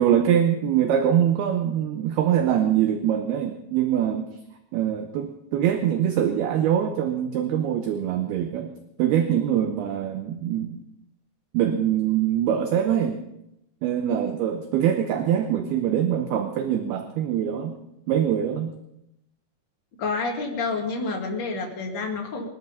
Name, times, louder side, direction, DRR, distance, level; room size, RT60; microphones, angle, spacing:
voice 1, 0.0-4.3 4.7-8.7 9.0-10.8 11.5-13.2 13.8-17.8 18.1-18.7, right 10 dB, 75° right, 7 dB, 2.5 m, -23 dB
voice 2, 20.0-22.5, left 3 dB, 40° left, 1 dB, 1.8 m, -28 dB
21.0 x 12.5 x 5.5 m, 0.84 s
omnidirectional pair, 5.2 m